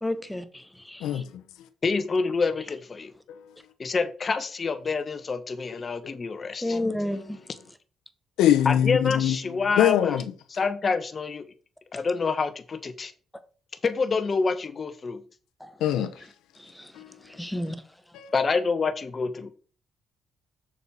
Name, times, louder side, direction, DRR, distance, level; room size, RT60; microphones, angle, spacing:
voice 1, 0.0-1.2 6.6-7.4 15.6-15.8 16.6-16.9 17.2-17.8, left 1 dB, 5° left, 1.1 m, -31 dB
voice 2, 1.0-1.7 3.3-3.5 8.4-10.3 15.8-16.3 16.9-17.2 18.1-18.3, left 10 dB, 90° left, 0.9 m, -24 dB
voice 3, 1.8-3.1 3.8-6.8 8.6-10.2 10.6-11.4 11.9-13.1 13.8-15.2 18.3-19.5, left 4 dB, 35° left, 1.3 m, -27 dB
6.7 x 6.5 x 4.4 m
cardioid pair, 90°, 0 cm